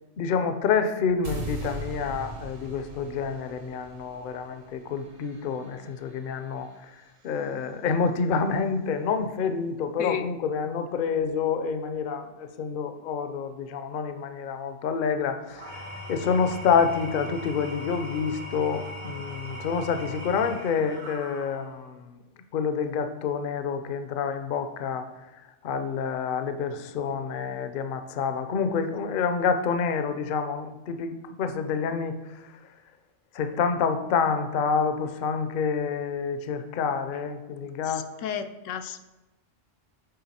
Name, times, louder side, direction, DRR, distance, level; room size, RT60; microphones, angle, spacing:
voice 1, 0.2-22.2 22.5-25.1 25.6-32.6 33.3-38.1, left 6 dB, 55° left, 9 dB, 0.6 m, -28 dB
sound 1, 1.2-7.4, right 2 dB, 60° right, 1.4 m, -41 dB
Engine / Tools, 15.5-21.9, left 1 dB, 85° right, 2.3 m, -39 dB
voice 2, 38.2-39.0, left 8 dB, 85° left, 8 dB, 0.9 m, -31 dB
7.8 x 4.6 x 4.2 m, 1.0 s
omnidirectional pair, 1.3 m